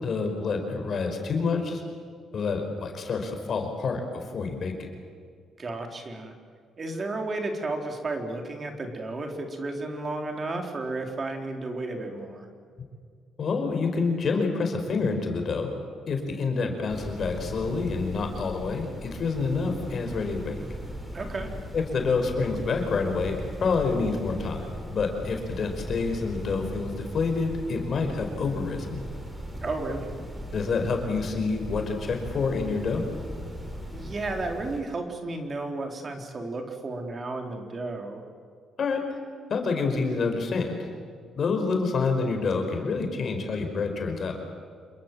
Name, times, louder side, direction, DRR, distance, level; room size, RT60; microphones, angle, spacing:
voice 1, 0.0-1.8 2.3-4.0 4.3-4.9 13.4-15.7 16.1-20.6 21.7-29.0 30.5-33.0 38.8-39.0 39.5-40.9 41.4-44.3, left 4 dB, 50° left, 4 dB, 5.1 m, -27 dB
voice 2, 5.6-6.3 6.8-12.5 21.1-21.5 29.6-30.1 33.9-38.2, right 2 dB, 35° right, 3 dB, 3.8 m, -33 dB
sound 1, 16.9-34.8, equal, 15° right, 5.6 m, -39 dB
27.5 x 22.5 x 7.6 m, 2.1 s
cardioid pair, 90°, 0 cm